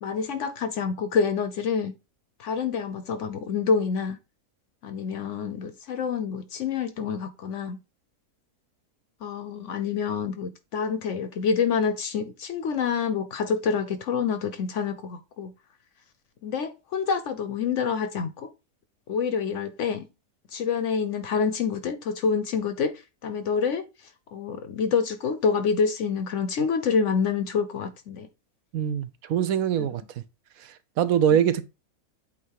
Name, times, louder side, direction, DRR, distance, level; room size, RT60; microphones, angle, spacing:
voice 1, 0.0-1.9 2.4-4.2 4.8-7.8 9.2-15.5 16.4-18.5 19.1-20.1 20.5-22.9 23.2-23.9 24.3-28.3 29.8-29.9 31.3-31.4, left 6 dB, 65° left, 0.9 m, -27 dB
voice 2, 28.7-30.0 31.0-31.6, right 9 dB, 70° right, 1.0 m, -23 dB
8.3 x 2.9 x 4.6 m
omnidirectional pair, 1.6 m